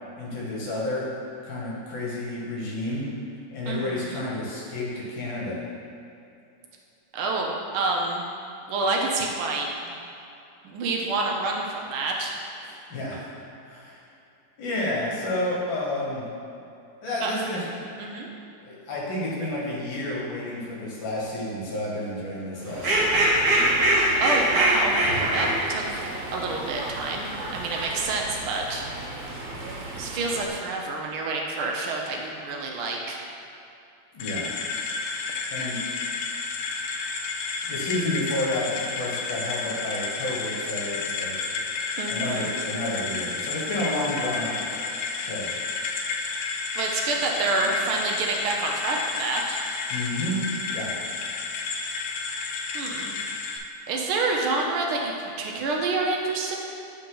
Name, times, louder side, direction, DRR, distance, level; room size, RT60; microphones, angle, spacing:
voice 1, 0.1-1.1 1.4-3.1 3.5-5.6 12.9-13.2 13.6-14.0 14.6-16.3 17.0-17.7 18.6-23.2 34.1-34.5 35.5-35.8 37.6-41.4 42.1-44.6 45.2-45.5 49.9-50.4 50.7-50.9, left 1 dB, 65° left, -5 dB, 2.0 m, -30 dB
voice 2, 3.7-4.2 7.1-8.2 8.7-10.0 10.6-12.3 17.2-17.3 18.0-18.3 24.2-25.0 25.3-28.8 30.0-33.2 42.0-42.5 46.8-49.6 52.7-53.1 53.9-56.6, right 3 dB, 75° right, 0 dB, 1.5 m, -28 dB
Fowl, 22.7-30.5, right 1 dB, 50° right, 1.3 m, -25 dB
sound 1, 34.2-53.6, left 4 dB, 85° left, 1.5 m, -31 dB
8.6 x 3.9 x 3.8 m, 2.7 s
omnidirectional pair, 2.4 m